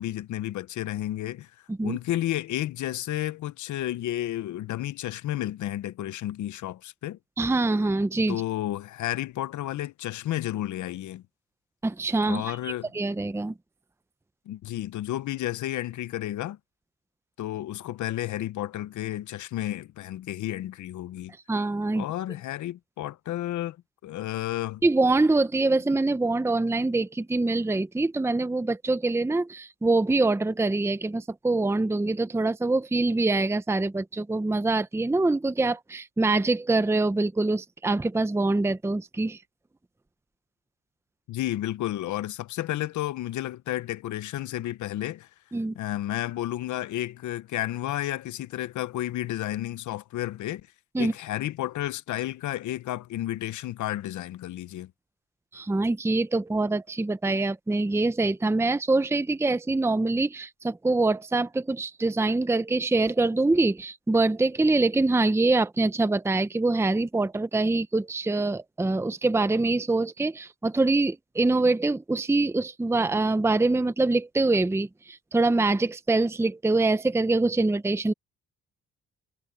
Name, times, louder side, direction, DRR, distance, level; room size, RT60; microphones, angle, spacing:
voice 1, 0.0-1.5 1.8-7.2 8.3-11.2 12.2-12.9 14.5-16.6 17.4-21.3 22.0-23.8 24.0-24.8 41.3-45.3 45.7-50.7 51.0-54.9, left 14 dB, 75° left, 0.9 m, -32 dB
voice 2, 7.4-8.4 11.8-13.5 21.5-22.0 24.8-39.4 45.5-45.8 50.9-51.1 55.5-78.1, right 2 dB, 10° right, 0.7 m, -24 dB
cardioid pair, 90°, 30 cm